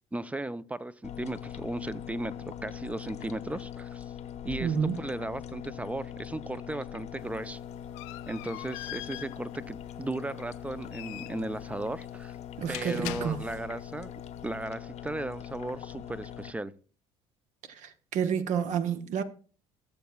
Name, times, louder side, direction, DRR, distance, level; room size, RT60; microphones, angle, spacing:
voice 1, 0.1-4.0 4.4-7.6 8.3-12.3 12.7-14.1 14.4-16.7, right 2 dB, 10° right, 0.5 m, -36 dB
sound 1, 1.0-16.5, left 9 dB, 50° left, 0.9 m, -42 dB
voice 2, 4.6-5.0 12.6-13.4 17.7-19.2, right 7 dB, 60° right, 0.9 m, -29 dB
sound 2, 7.2-13.8, left 18 dB, 70° left, 0.4 m, -43 dB
16.5 x 7.0 x 2.3 m
hypercardioid pair, 65°, 14 cm